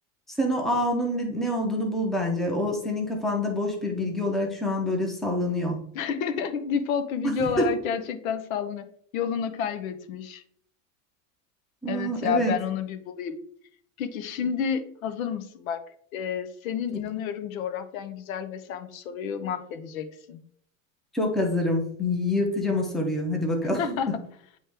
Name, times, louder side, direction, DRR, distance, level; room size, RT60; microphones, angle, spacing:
voice 1, 0.4-5.8 7.4-7.7 11.8-12.5 21.1-24.0, left 1 dB, ahead, 0 dB, 0.6 m, -26 dB
voice 2, 5.9-8.8 9.1-10.4 11.9-13.4 14.0-15.8 16.1-20.4 23.8-24.2, left 7 dB, 85° left, 10 dB, 0.9 m, -30 dB
9.2 x 3.1 x 3.4 m, 0.64 s
supercardioid pair, 160°, 40 cm